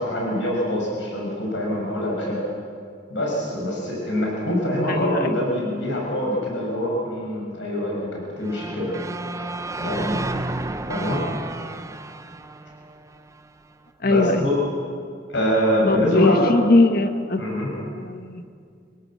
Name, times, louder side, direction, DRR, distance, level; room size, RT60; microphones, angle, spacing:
voice 1, 0.0-2.4 3.1-9.0 9.4-9.5 9.8-10.3 10.9-11.2 14.0-14.6 15.3-16.6 17.4-17.7, equal, 80° left, -2 dB, 6.0 m, -24 dB
voice 2, 4.9-5.3 14.0-14.5 15.9-17.4 17.8-18.4, left 2 dB, 55° left, 8 dB, 1.4 m, -20 dB
sound 1, 8.4-13.5, right 2 dB, 15° right, 0.7 m, -31 dB
25.5 x 17.0 x 7.7 m, 2.3 s
head